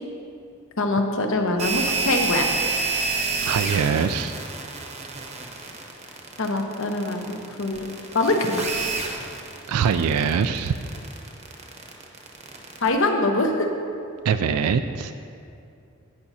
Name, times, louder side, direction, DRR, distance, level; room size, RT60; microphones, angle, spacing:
voice 1, 0.8-2.5 6.4-7.9 8.1-8.6 12.8-13.7, left 2 dB, 60° left, 3 dB, 0.8 m, -23 dB
sound 1, 1.6-12.9, right 4 dB, 30° right, 0.8 m, -29 dB
voice 2, 3.4-4.4 9.7-10.7 14.2-15.1, right 6 dB, 85° right, 9 dB, 0.3 m, -23 dB
17.0 x 6.0 x 2.8 m, 2.5 s
head